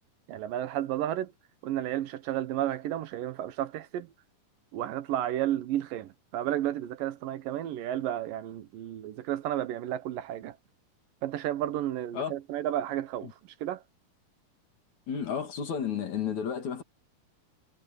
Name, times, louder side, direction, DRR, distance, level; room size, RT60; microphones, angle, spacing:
voice 1, 0.3-1.3 1.6-4.1 4.7-10.6 11.2-13.8, right 12 dB, 80° right, 2.8 m, -32 dB
voice 2, 15.1-16.8, left 7 dB, 60° left, 3.7 m, -32 dB
omnidirectional pair, 3.9 m